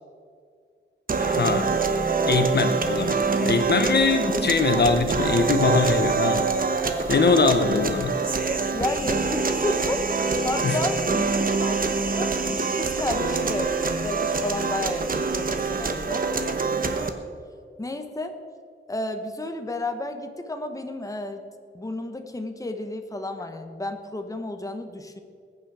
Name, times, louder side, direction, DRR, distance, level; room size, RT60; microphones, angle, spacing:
sound 1, 1.1-17.1, right 4 dB, 45° right, 1.1 m, -25 dB
voice 1, 1.2-1.7 2.0-3.2 3.4-6.5 7.1-8.2 10.6-10.8, left 4 dB, 55° left, 7 dB, 0.8 m, -22 dB
voice 2, 3.4-3.9 4.3-4.8 5.5-5.6 8.7-13.8 14.0-16.2 17.8-18.4 18.9-21.4 21.7-25.2, left 2 dB, 15° left, 6 dB, 1.1 m, -32 dB
20.5 x 9.2 x 4.9 m, 2.2 s
wide cardioid pair, 150°, 21 cm